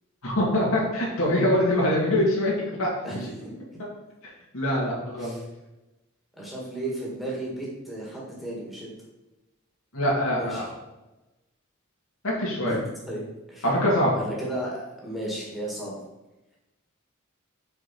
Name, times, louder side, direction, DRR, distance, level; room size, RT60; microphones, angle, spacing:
voice 1, 0.2-2.5 2.8-3.1 4.5-5.3 9.9-10.7 12.2-12.8 13.6-14.2, left 1 dB, 80° left, -4 dB, 2.3 m, -23 dB
voice 2, 3.0-3.5 5.2-5.4 6.4-8.9 10.3-10.7 12.7-12.8 13.1-13.2 13.5-13.7 14.2-16.0, right 1 dB, ahead, -5 dB, 1.8 m, -34 dB
5.7 x 5.2 x 4.2 m, 1.0 s
head